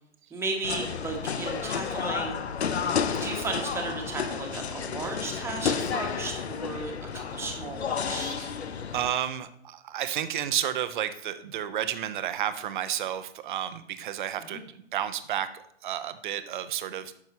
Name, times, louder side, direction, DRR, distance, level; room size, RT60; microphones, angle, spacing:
voice 1, 0.3-2.4 3.1-8.3 14.4-14.6, right 3 dB, 10° right, 1 dB, 1.2 m, -35 dB
sound 1, 0.6-9.1, left 6 dB, 75° left, 0.7 m, -31 dB
voice 2, 8.2-8.5 8.9-17.1, right 10 dB, 50° right, 12 dB, 0.7 m, -31 dB
9.4 x 6.6 x 2.8 m, 0.70 s
figure-of-eight pair, 110°, 33 cm